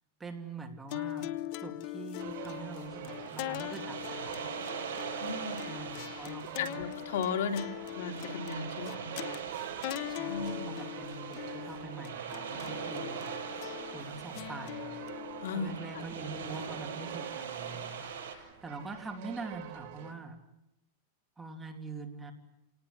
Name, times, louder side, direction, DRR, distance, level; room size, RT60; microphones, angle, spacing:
voice 1, 0.2-1.3 1.6-4.4 5.7-6.8 8.9-9.0 10.1-13.3 13.6-15.0 15.5-20.4 21.4-22.3, right 3 dB, 10° right, 3 dB, 2.7 m, -44 dB
sound 1, 0.9-17.4, left 15 dB, 45° left, 1.0 m, -42 dB
sound 2, 2.2-20.1, right 10 dB, 45° right, 3.7 m, -47 dB
sound 3, 2.2-18.4, right 7 dB, 85° right, 7.3 m, -42 dB
voice 2, 5.2-5.8 6.2-6.3 6.6-9.1 10.3-10.7 15.4-16.0, left 5 dB, 80° left, 6 dB, 3.0 m, -36 dB
29.0 x 19.0 x 9.8 m, 0.88 s
supercardioid pair, 160°, 0 cm